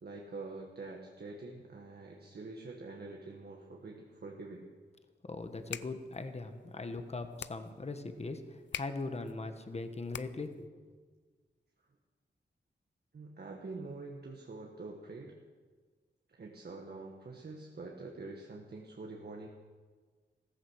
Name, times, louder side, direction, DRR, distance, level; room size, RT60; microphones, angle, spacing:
voice 1, 0.0-4.7 13.1-15.3 16.3-19.5, right 3 dB, 60° right, 0 dB, 1.6 m, -46 dB
voice 2, 5.3-10.7, left 3 dB, 35° left, 8 dB, 1.3 m, -40 dB
sound 1, 5.4-10.7, left 8 dB, 75° left, 0.5 m, -47 dB
15.0 x 15.0 x 6.4 m, 1.5 s
wide cardioid pair, 125°, 19 cm